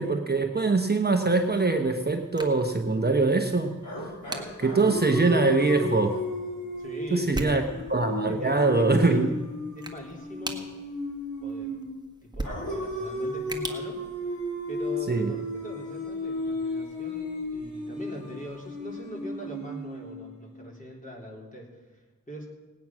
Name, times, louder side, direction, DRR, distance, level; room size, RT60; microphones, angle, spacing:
voice 1, 0.0-3.8 4.6-6.2 7.1-7.6 7.9-9.4 15.1-15.3, right 3 dB, 30° right, 4 dB, 0.9 m, -23 dB
sound 1, 1.3-14.9, right 1 dB, 15° right, 1.6 m, -43 dB
sound 2, 3.8-11.9 12.4-20.5, left 2 dB, 65° left, 4.9 m, -34 dB
voice 2, 6.8-7.7 8.3-9.2 9.8-10.7 11.4-11.8 12.2-14.4 14.7-22.5, right 1 dB, 25° left, -1 dB, 3.7 m, -42 dB
18.5 x 9.2 x 6.1 m, 1.2 s
wide cardioid pair, 70°, 33 cm